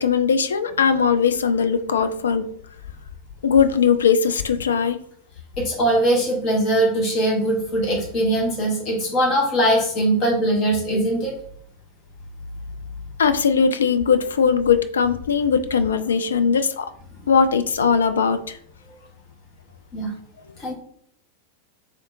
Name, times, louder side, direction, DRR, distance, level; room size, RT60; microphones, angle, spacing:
voice 1, 0.0-2.5 3.4-5.0 13.2-16.9 17.3-18.6, left 6 dB, 70° left, 10 dB, 0.3 m, -19 dB
voice 2, 5.6-11.3 19.9-20.1 20.6-20.7, right 1 dB, 35° left, -1 dB, 1.2 m, -21 dB
3.6 x 3.5 x 2.6 m, 0.65 s
figure-of-eight pair, 90°, 0 cm